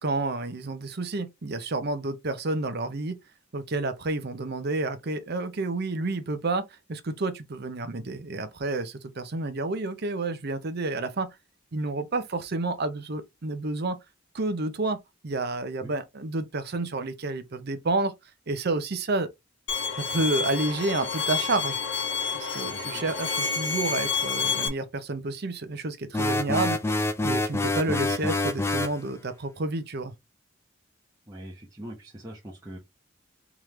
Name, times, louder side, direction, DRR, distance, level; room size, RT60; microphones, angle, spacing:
voice 1, 0.0-3.2 3.5-6.6 6.9-11.3 11.7-14.0 14.3-15.0 15.2-18.1 18.5-19.3 20.0-21.8 22.3-26.9 27.2-30.1, right 2 dB, 50° right, 0.7 m, -30 dB
Bowed string instrument, 19.7-24.7, left 5 dB, 60° left, 1.1 m, -29 dB
voice 2, 22.6-23.0 31.3-32.8, right 1 dB, 15° right, 0.9 m, -42 dB
sound 1, 26.1-29.0, left 2 dB, 10° left, 0.4 m, -26 dB
3.6 x 3.1 x 3.1 m
head